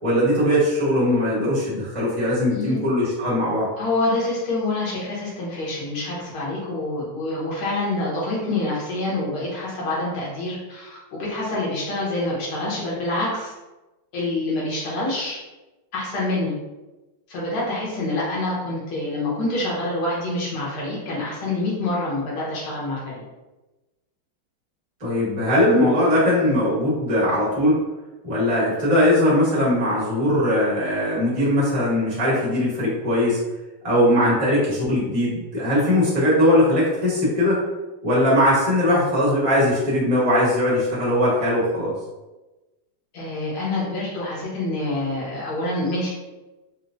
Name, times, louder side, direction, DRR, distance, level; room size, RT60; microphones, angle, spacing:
voice 1, 0.0-3.7 25.0-27.8 28.2-33.4 33.8-37.6 38.0-41.9, left 1 dB, 35° right, -8 dB, 0.5 m, -20 dB
voice 2, 2.5-2.9 3.8-13.5 14.1-15.4 15.9-16.5 17.3-23.0 43.1-46.1, left 2 dB, 75° left, -6 dB, 1.8 m, -26 dB
4.7 x 2.0 x 2.4 m, 1.1 s
omnidirectional pair, 2.4 m